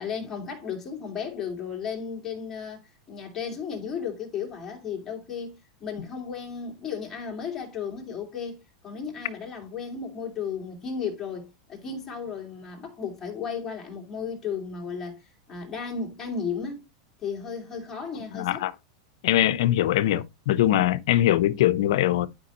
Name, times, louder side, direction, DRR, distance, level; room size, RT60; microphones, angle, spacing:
voice 1, 0.0-2.8 3.1-16.8 17.2-18.7, left 6 dB, 15° left, 2.6 m, -34 dB
voice 2, 18.3-18.7 19.2-22.3, left 13 dB, 60° left, 0.8 m, -22 dB
11.0 x 5.2 x 3.0 m
supercardioid pair, 175°, 3 cm